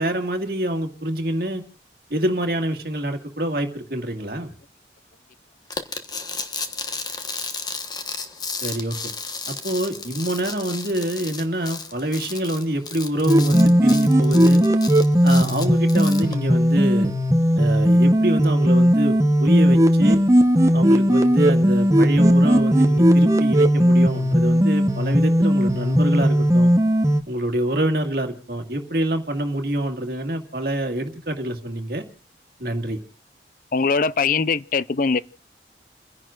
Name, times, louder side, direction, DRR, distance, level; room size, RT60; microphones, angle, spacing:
voice 1, 0.0-1.6 2.1-4.6 8.6-8.9 9.5-14.6 15.2-17.1 17.6-20.2 20.7-26.7 27.3-32.0 32.6-33.0, right 1 dB, 55° right, 2.0 m, -26 dB
sound 1, 5.7-16.3, left 4 dB, 20° left, 1.2 m, -33 dB
sound 2, 13.3-27.2, equal, 15° right, 1.0 m, -17 dB
voice 2, 33.7-35.2, left 4 dB, 50° left, 0.5 m, -21 dB
30.0 x 10.5 x 2.4 m
head